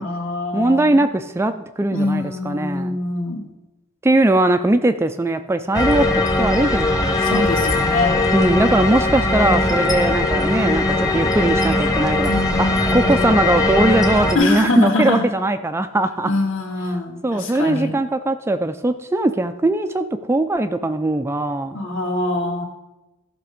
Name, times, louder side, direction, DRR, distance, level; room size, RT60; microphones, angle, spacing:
voice 1, 0.0-1.0 1.9-3.5 7.2-8.2 12.3-13.3 14.3-15.3 16.3-18.0 21.7-22.6, left 2 dB, 60° left, 0 dB, 2.1 m, -24 dB
voice 2, 0.5-3.0 4.0-7.4 8.3-12.3 12.6-16.3 17.2-21.8, right 2 dB, 10° right, 9 dB, 0.4 m, -20 dB
sound 1, 5.7-14.4, left 2 dB, 15° left, 1.0 m, -19 dB
13.5 x 6.0 x 5.0 m, 1.0 s
head